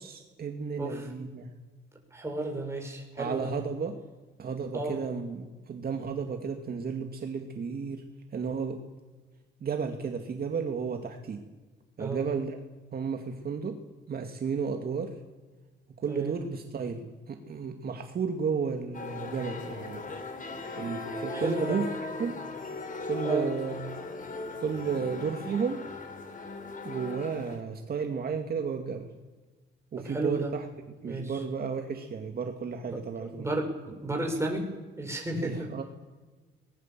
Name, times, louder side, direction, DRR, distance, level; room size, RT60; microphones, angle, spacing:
voice 1, 0.0-1.5 3.2-4.0 4.4-8.0 8.3-8.8 9.6-11.4 12.0-12.6 12.9-13.8 14.1-15.2 16.0-20.0 20.8-21.9 22.2-22.4 23.1-24.0 24.6-25.8 26.8-29.1 29.9-30.7 31.0-33.5 35.4-35.8, right 6 dB, 50° right, 4 dB, 2.3 m, -33 dB
voice 2, 2.1-3.5 4.7-5.0 12.0-12.3 16.1-16.3 21.3-21.8 23.2-23.5 30.0-30.5 31.0-31.4 32.9-34.6 35.0-35.7, right 2 dB, 15° right, 1 dB, 7.0 m, -33 dB
sound 1, 18.9-27.6, left 3 dB, 40° left, 4.6 m, -38 dB
22.5 x 20.5 x 7.6 m, 1.3 s
cardioid pair, 90°, 20 cm